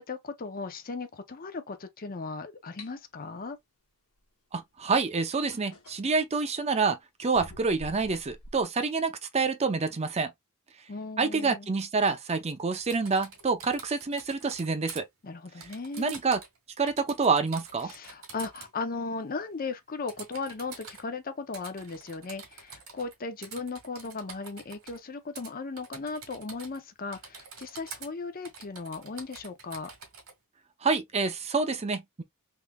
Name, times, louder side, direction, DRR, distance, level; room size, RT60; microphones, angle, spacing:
voice 1, 0.0-3.6 10.9-11.7 15.2-16.2 17.8-29.9, left 4 dB, 40° left, 0.7 m, -37 dB
sound 1, 2.8-2.9 4.8-4.9 5.5-6.6 7.3-8.6, left 1 dB, 70° left, 1.2 m, -47 dB
voice 2, 4.5-10.3 11.2-15.0 16.0-16.4 16.8-17.9 30.8-32.2, right 4 dB, 30° right, 0.6 m, -27 dB
Typing, 12.8-15.0 15.6-16.6 16.9-18.7 20.1-21.0 21.5-23.1 23.4-25.0 25.4-25.5 25.8-26.8 27.1-28.1 28.4-30.3, right 5 dB, 85° right, 1.8 m, -46 dB
3.6 x 3.2 x 2.2 m
head